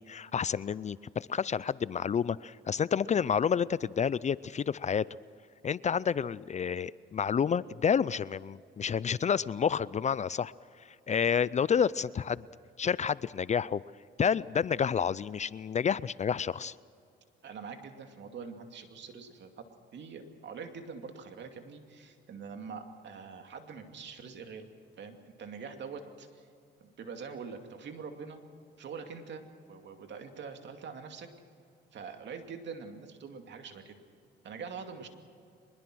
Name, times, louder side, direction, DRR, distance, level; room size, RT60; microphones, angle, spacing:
voice 1, 0.0-5.0 5.6-10.5 11.1-12.5 12.8-13.8 14.2-16.7, left 7 dB, 35° left, 20 dB, 0.4 m, -29 dB
voice 2, 17.4-24.7 25.0-26.5 26.8-28.4 28.8-31.3 31.9-33.9 34.4-35.1, right 5 dB, 65° right, 5 dB, 2.5 m, -44 dB
24.0 x 21.5 x 6.2 m, 2.3 s
cardioid pair, 90°, 20 cm